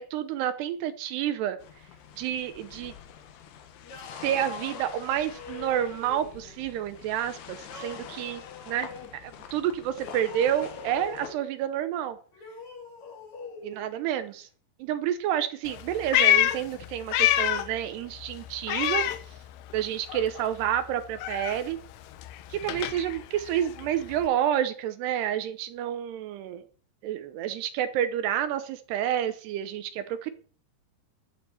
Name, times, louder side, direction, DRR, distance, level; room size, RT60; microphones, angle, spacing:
voice 1, 0.0-1.6 2.2-2.9 4.2-8.4 8.7-8.9 9.2-12.2 13.6-14.5 14.8-19.1 19.7-21.8 22.5-26.6 27.0-30.3, right 10 dB, 75° right, 11 dB, 2.7 m, -29 dB
sound 1, 1.6-11.4, left 9 dB, 65° left, 3.0 m, -46 dB
sound 2, 3.8-6.6 7.6-9.1 9.9-11.5 12.3-13.8, left 4 dB, 40° left, 3.8 m, -44 dB
Meow, 15.7-17.8 18.1-19.8 20.1-24.3, left 13 dB, 85° left, 3.4 m, -27 dB
12.5 x 7.5 x 7.6 m, 0.44 s
omnidirectional pair, 5.4 m